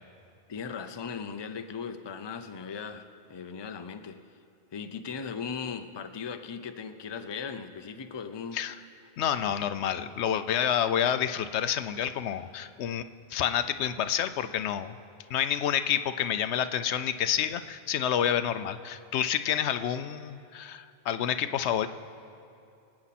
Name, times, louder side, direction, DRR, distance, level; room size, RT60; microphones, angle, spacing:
voice 1, 0.5-4.2 4.7-8.6, left 6 dB, 30° left, 8 dB, 0.5 m, -38 dB
voice 2, 9.2-13.0 13.3-15.0 15.3-21.9, left 9 dB, 90° left, 11 dB, 0.9 m, -28 dB
25.0 x 8.8 x 4.2 m, 2.7 s
omnidirectional pair, 1.1 m